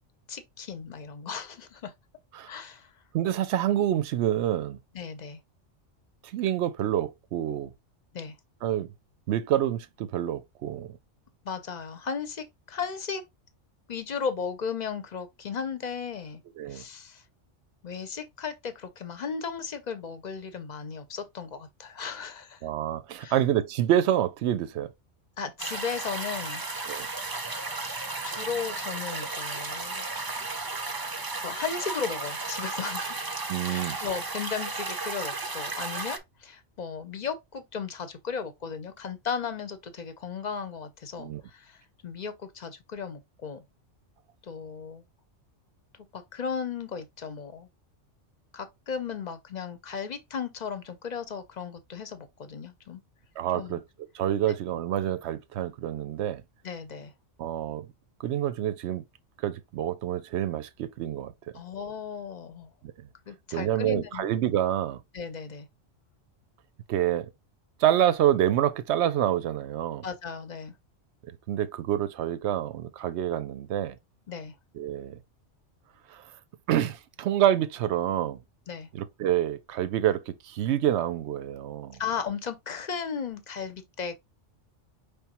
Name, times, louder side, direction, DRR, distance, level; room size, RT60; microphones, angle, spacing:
voice 1, 0.3-1.9 2.4-2.9 4.9-5.4 8.1-8.3 11.4-13.2 13.9-16.4 16.7-17.2 17.8-22.6 23.2-23.4 25.4-26.6 28.2-30.1 31.4-33.2 33.6-43.6 44.4-45.0 46.1-47.7 48.5-53.0 53.5-53.8 54.5-54.6 56.6-57.1 61.5-62.7 63.3-64.3 65.1-65.7 70.0-70.7 74.3-74.6 78.7-78.9 82.0-84.1, left 6 dB, 45° left, 0.7 m, -35 dB
voice 2, 3.1-4.8 6.3-7.7 8.6-8.9 9.3-11.0 16.6-16.8 22.6-24.9 26.9-27.1 33.5-34.0 41.2-41.4 53.4-53.8 54.1-56.4 57.4-57.9 58.2-59.0 59.4-61.3 63.5-65.0 66.9-67.3 67.8-70.1 71.5-74.0 74.8-75.2 76.1-76.2 76.7-78.4 78.9-82.0, right 11 dB, 70° right, 0.8 m, -27 dB
sound 1, 25.6-36.2, right 3 dB, 30° right, 0.4 m, -34 dB
5.0 x 3.4 x 2.9 m
omnidirectional pair, 1.3 m